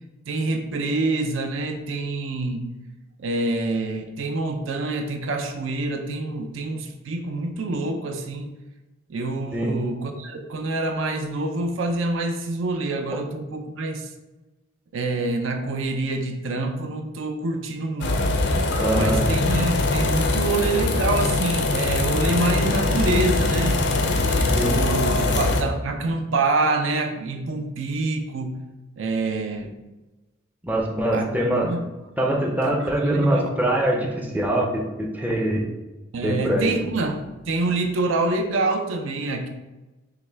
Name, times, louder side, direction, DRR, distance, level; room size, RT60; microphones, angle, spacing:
voice 1, 0.3-2.7 3.2-8.5 9.1-14.1 14.9-18.4 18.9-23.8 24.3-28.6 29.0-29.7 31.1-31.3 31.6-31.9 32.6-33.5 36.1-39.5, right 2 dB, 70° right, 4 dB, 0.5 m, -26 dB
sound 1, 18.0-25.6, left 2 dB, 55° left, 0.5 m, -22 dB
voice 2, 18.8-19.2 24.5-24.9 25.2-25.3 30.6-31.7 32.2-35.7 36.2-36.7, right 1 dB, 10° right, -1 dB, 0.5 m, -23 dB
5.7 x 2.2 x 3.3 m, 1.1 s
head